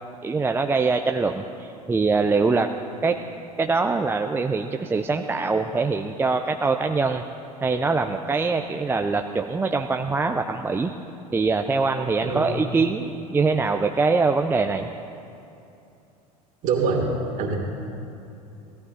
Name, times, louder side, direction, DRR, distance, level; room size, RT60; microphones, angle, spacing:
voice 1, 0.2-2.7 3.0-3.2 3.6-7.2 7.6-10.9 11.3-14.9, right 4 dB, 10° right, 5 dB, 0.5 m, -23 dB
voice 2, 16.6-17.0 17.4-17.6, right 5 dB, 45° right, 0 dB, 2.7 m, -24 dB
17.5 x 13.0 x 4.2 m, 2.7 s
figure-of-eight pair, 75°, 20 cm